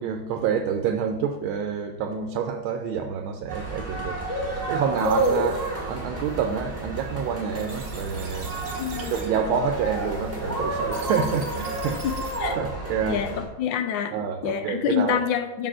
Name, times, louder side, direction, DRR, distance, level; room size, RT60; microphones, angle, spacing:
voice 1, 0.0-4.2 4.7-8.7 9.0-12.1 12.6-13.3 14.1-15.2, right 7 dB, 90° right, 6 dB, 1.4 m, -28 dB
sound 1, 3.5-13.4, right 1 dB, 5° right, 1.8 m, -30 dB
sound 2, 4.5-12.6, right 3 dB, 40° right, 1.3 m, -45 dB
voice 2, 8.8-9.1 12.4-12.6 13.1-13.3 13.6-14.1 14.4-15.7, left 9 dB, 75° left, 8 dB, 1.2 m, -26 dB
6.0 x 4.5 x 6.1 m, 1.1 s
omnidirectional pair, 2.2 m